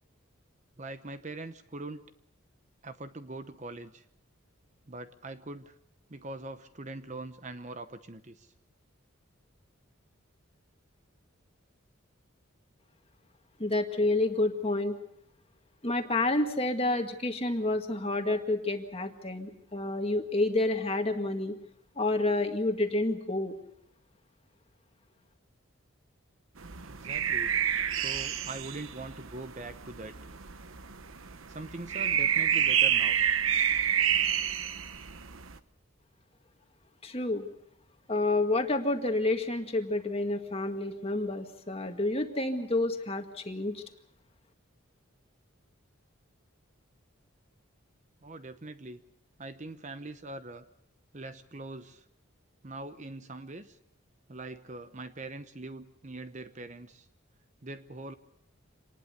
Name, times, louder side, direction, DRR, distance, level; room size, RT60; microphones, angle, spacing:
voice 1, 0.8-2.0 2.8-4.0 4.9-5.7 6.1-8.5 26.8-27.5 27.9-30.1 31.5-33.2 48.2-49.0 49.4-50.6 51.1-52.0 52.6-53.8 54.3-57.1 57.6-58.1, right 2 dB, 35° right, 10 dB, 0.9 m, -42 dB
voice 2, 13.6-15.0 15.8-21.6 22.0-23.5 37.0-37.5 38.1-43.8, left 2 dB, 30° left, 5 dB, 1.9 m, -29 dB
sound 1, 26.6-35.6, right 9 dB, 75° right, 1.1 m, -29 dB
26.5 x 19.5 x 6.8 m, 0.72 s
head